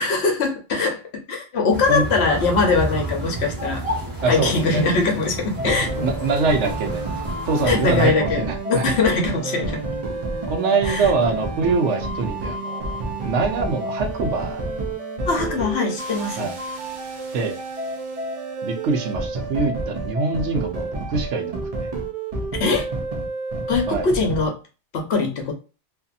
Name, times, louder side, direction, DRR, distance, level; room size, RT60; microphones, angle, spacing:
voice 1, 0.0-3.8 4.2-6.3 7.7-9.8 10.8-11.1 15.2-16.5 22.6-22.9 23.7-24.6 24.9-25.5, left 4 dB, 60° left, 2 dB, 1.0 m, -22 dB
sound 1, 1.7-8.1, right 1 dB, 20° right, 1.1 m, -31 dB
voice 2, 4.2-4.8 5.6-5.7 6.0-7.0 7.5-8.8 10.5-13.0 13.2-14.6 16.4-16.6 17.3-17.6 18.6-21.9 23.9-24.1, right 4 dB, 75° right, 5 dB, 0.9 m, -24 dB
sound 2, 5.6-24.5, right 2 dB, 55° right, 0.4 m, -29 dB
2.6 x 2.6 x 2.3 m, 0.33 s
omnidirectional pair, 1.3 m